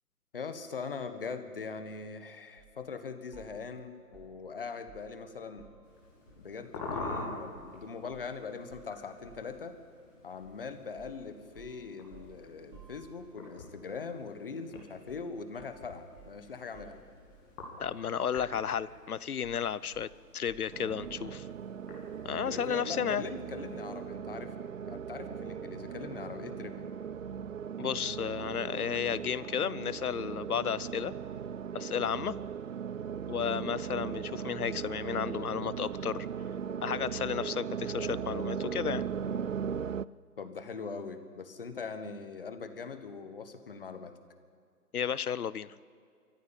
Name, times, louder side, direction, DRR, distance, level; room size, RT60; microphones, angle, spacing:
voice 1, 0.3-5.7 6.4-9.8 10.2-17.0 22.5-26.9 40.4-44.1, left 5 dB, 35° left, 9 dB, 1.4 m, -41 dB
sound 1, 2.6-2.8 3.3-5.9 6.3-7.7 8.1-8.3 8.7-9.6 10.4-10.6 11.0-13.5 15.1-15.3 15.6-18.1 18.3-19.0 19.4-21.4, right 6 dB, 15° right, 2.1 m, -57 dB
sound 2, 5.8-24.0, left 2 dB, 15° left, 2.8 m, -47 dB
voice 2, 17.8-21.5 22.2-23.2 27.8-31.1 31.7-32.4 33.3-36.3 36.8-39.0 44.9-45.7, left 8 dB, 65° left, 19 dB, 0.8 m, -33 dB
sound 3, 20.7-40.1, right 7 dB, 55° right, 0.5 m, -38 dB
23.5 x 14.5 x 8.9 m, 2.2 s
hypercardioid pair, 170°, 47 cm